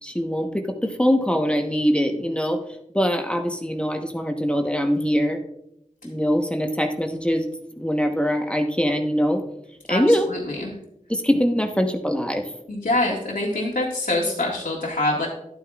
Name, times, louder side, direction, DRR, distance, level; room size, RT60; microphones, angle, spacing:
voice 1, 0.0-2.6 2.9-5.4 6.0-7.5 7.8-9.4 9.9-10.3 11.1-12.5, equal, 10° left, 4 dB, 1.0 m, -22 dB
voice 2, 10.3-10.7 12.7-15.3, left 2 dB, 80° left, -4 dB, 1.8 m, -25 dB
11.0 x 9.0 x 2.4 m, 0.80 s
cardioid pair, 45°, 14 cm